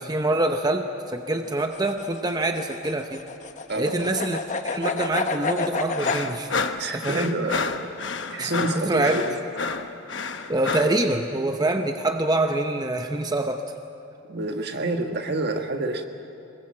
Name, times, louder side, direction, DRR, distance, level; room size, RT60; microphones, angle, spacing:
voice 1, 0.0-3.2 3.8-4.4 4.6-6.5 6.9-7.4 8.4-9.2 10.5-13.6, right 2 dB, 20° right, 5 dB, 0.8 m, -25 dB
sound 1, 1.5-6.2, left 4 dB, 40° left, 0.9 m, -29 dB
voice 2, 3.7-4.1 6.8-7.7 8.3-9.3 14.3-16.1, right 2 dB, 60° right, 5 dB, 1.6 m, -28 dB
sound 2, 6.0-11.0, left 4 dB, 65° left, 1.1 m, -30 dB
23.0 x 21.0 x 7.6 m, 2.7 s
head